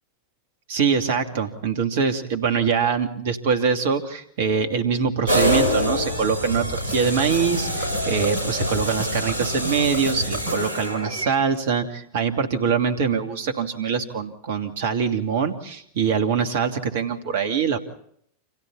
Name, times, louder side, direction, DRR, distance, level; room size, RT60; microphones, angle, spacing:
voice 1, 0.7-17.8, right 6 dB, 55° right, 7 dB, 2.8 m, -23 dB
sound 1, 5.3-11.3, equal, 75° right, 7.6 m, -25 dB
30.0 x 27.0 x 4.2 m, 0.67 s
figure-of-eight pair, 90°, 0 cm